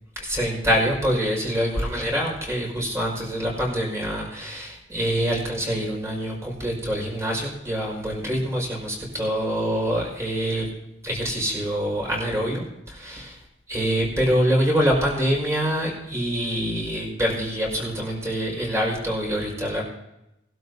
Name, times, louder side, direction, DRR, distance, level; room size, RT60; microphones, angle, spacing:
voice 1, 0.2-10.7 11.0-13.4 13.7-19.8, equal, 15° right, -3 dB, 5.4 m, -25 dB
20.5 x 12.5 x 2.8 m, 0.89 s
head